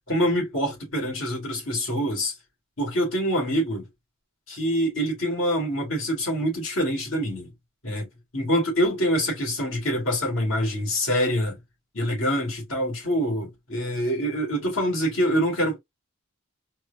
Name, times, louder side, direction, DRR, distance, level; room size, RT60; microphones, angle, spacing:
voice 1, 0.1-2.3 2.8-3.9 4.5-7.5 7.8-8.1 8.3-11.6 11.9-15.8, equal, 70° left, 2.3 m, -25 dB
4.6 x 2.2 x 2.7 m
head